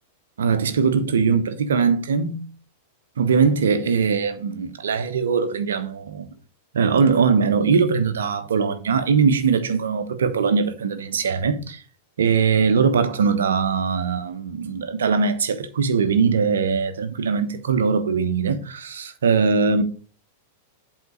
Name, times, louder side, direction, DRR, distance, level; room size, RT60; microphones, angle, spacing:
voice 1, 0.4-2.5 3.2-6.3 6.7-11.8 12.2-19.8, right 5 dB, 65° right, 1.0 m, -21 dB
8.2 x 3.7 x 6.5 m
figure-of-eight pair, 95°, 0 cm